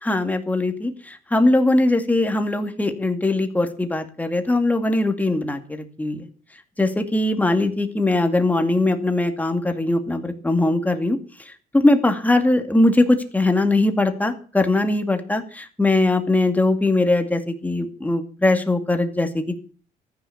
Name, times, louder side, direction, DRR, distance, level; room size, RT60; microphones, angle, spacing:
voice 1, 0.0-6.3 6.8-11.2 11.5-19.6, left 2 dB, 10° left, 6 dB, 2.3 m, -21 dB
14.0 x 10.0 x 7.2 m, 0.41 s
cardioid pair, 110°, 17 cm